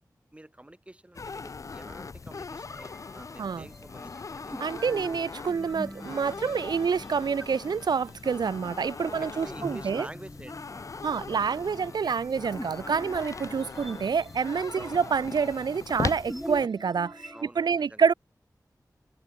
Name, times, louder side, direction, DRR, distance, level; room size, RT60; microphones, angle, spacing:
voice 1, 0.3-4.6 9.1-11.0 14.8-15.0 17.3-18.1, right 1 dB, 15° right, 1.7 m, -47 dB
sound 1, 1.1-16.7, left 4 dB, 50° left, 0.4 m, -40 dB
sound 2, 2.7-17.4, equal, ahead, 2.4 m, -45 dB
voice 2, 4.6-10.1 11.0-18.1, right 6 dB, 85° right, 0.4 m, -27 dB
wide cardioid pair, 65°, 7 cm